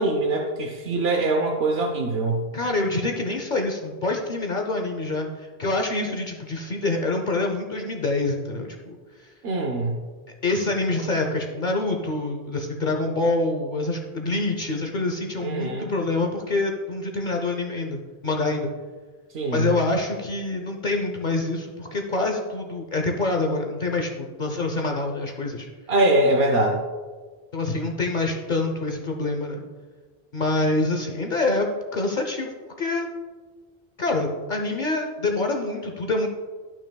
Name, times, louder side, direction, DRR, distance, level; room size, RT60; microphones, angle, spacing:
voice 1, 0.0-2.4 9.4-10.0 15.4-15.9 19.3-19.7 25.9-26.8, right 2 dB, 75° right, 1 dB, 1.0 m, -23 dB
voice 2, 2.5-9.0 10.4-18.7 19.5-25.7 27.5-29.6 30.3-33.1 34.0-36.3, left 2 dB, 50° left, 2 dB, 0.8 m, -26 dB
13.0 x 6.0 x 2.3 m, 1.4 s
omnidirectional pair, 1.1 m